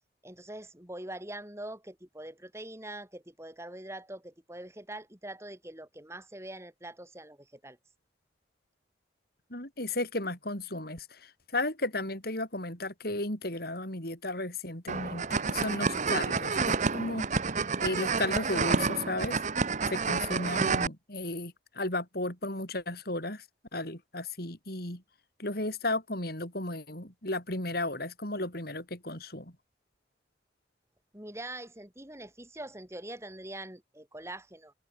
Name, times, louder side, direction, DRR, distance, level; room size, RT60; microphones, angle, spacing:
voice 1, 0.2-7.8 31.1-34.7, right 1 dB, 15° right, 6.8 m, -43 dB
voice 2, 9.5-17.3 17.8-19.4 19.9-23.4 23.7-25.0 25.4-29.5, left 2 dB, 55° left, 7.4 m, -34 dB
sound 1, 14.9-20.9, right 4 dB, 40° right, 0.9 m, -29 dB
head